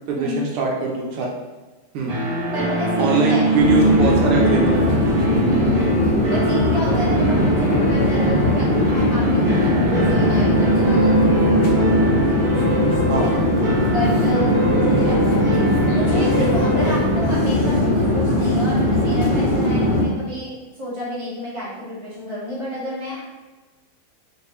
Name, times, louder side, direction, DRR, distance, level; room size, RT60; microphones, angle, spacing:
voice 1, 0.1-1.3 1.9-2.2 3.0-4.8 13.1-13.3, right 3 dB, 80° right, -1 dB, 1.6 m, -22 dB
sound 1, 2.1-18.8, right 1 dB, 65° right, 2.5 m, -23 dB
voice 2, 2.5-3.5 5.4-6.0 6.3-11.1 13.2-13.5 13.8-15.6 15.9-23.2, equal, 20° right, -8 dB, 1.1 m, -29 dB
sound 2, 3.5-20.1, left 1 dB, 65° left, 1.2 m, -19 dB
4.8 x 2.6 x 3.0 m, 1.2 s
omnidirectional pair, 2.4 m